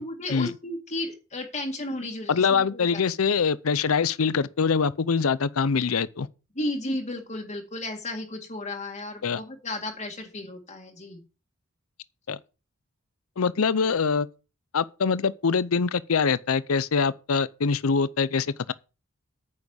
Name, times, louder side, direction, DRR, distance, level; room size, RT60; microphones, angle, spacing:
voice 1, 0.0-3.0 6.6-11.2 13.7-13.9, left 1 dB, 35° left, 1.9 m, -34 dB
voice 2, 2.3-6.3 9.2-9.4 12.3-12.4 13.4-14.3 14.7-18.7, left 5 dB, 80° left, 0.6 m, -24 dB
9.5 x 6.4 x 7.0 m
head